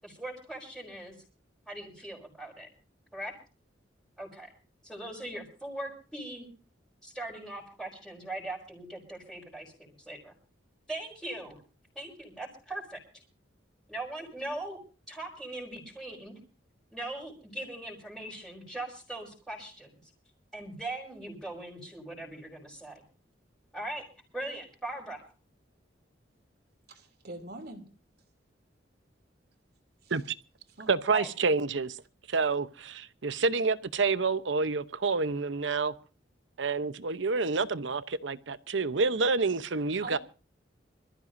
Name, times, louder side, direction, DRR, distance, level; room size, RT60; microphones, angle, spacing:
voice 1, 0.0-1.1 1.7-2.7 3.1-3.3 4.2-4.5 4.8-6.5 7.0-10.3 10.9-11.6 11.9-13.2 13.9-14.8 15.1-16.4 16.9-19.9 20.5-23.0 23.7-24.0 24.3-25.2 31.1-31.3, right 1 dB, ahead, 4.9 m, -40 dB
voice 2, 26.9-27.9 30.0-30.1 30.8-30.9 40.0-40.2, right 2 dB, 55° right, 2.8 m, -43 dB
voice 3, 30.9-32.0 32.3-35.9 36.6-40.2, right 4 dB, 75° right, 0.8 m, -28 dB
26.5 x 14.0 x 2.7 m
head